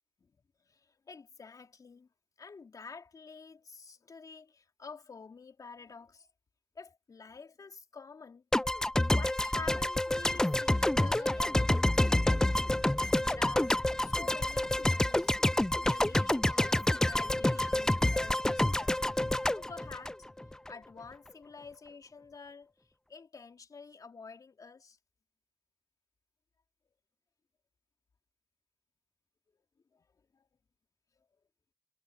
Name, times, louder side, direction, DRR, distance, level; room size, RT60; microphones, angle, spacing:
voice 1, 0.6-2.1 2.4-6.3 6.7-8.4 9.0-12.3 13.0-15.4 15.8-19.0 19.5-20.3 20.7-25.0 29.9-30.1 30.3-30.5, left 5 dB, 45° left, 3.2 m, -49 dB
sound 1, 8.5-20.7, left 1 dB, 5° left, 0.3 m, -28 dB
hypercardioid pair, 45°, 8 cm